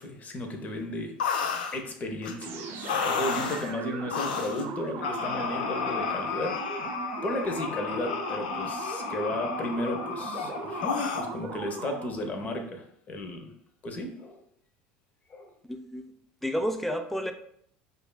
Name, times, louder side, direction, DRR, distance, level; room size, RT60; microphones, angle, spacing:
voice 1, 0.0-1.4 1.7-7.0 7.2-13.5 13.8-14.4 15.3-15.5, left 1 dB, 35° left, 4 dB, 0.7 m, -34 dB
sound 1, 1.2-1.8 2.2-2.3 2.8-3.7 4.1-4.7 5.0-11.3, left 6 dB, 90° left, 0.4 m, -32 dB
sound 2, 2.4-12.3, right 4 dB, 55° right, 0.6 m, -38 dB
voice 2, 15.7-16.0 16.4-17.3, equal, 5° left, 6 dB, 0.4 m, -30 dB
4.9 x 2.5 x 2.2 m, 0.65 s
supercardioid pair, 90°, 5 cm